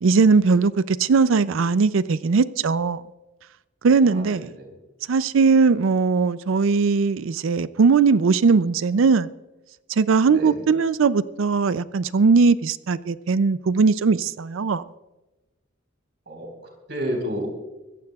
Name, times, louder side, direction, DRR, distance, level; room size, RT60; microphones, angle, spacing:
voice 1, 0.0-3.0 3.8-4.5 5.1-9.3 9.9-14.8, right 4 dB, 70° right, 0.4 m, -19 dB
voice 2, 4.0-4.7 10.3-10.5 16.3-16.5 16.9-17.5, equal, 55° right, 4.2 m, -30 dB
24.5 x 14.5 x 2.4 m
head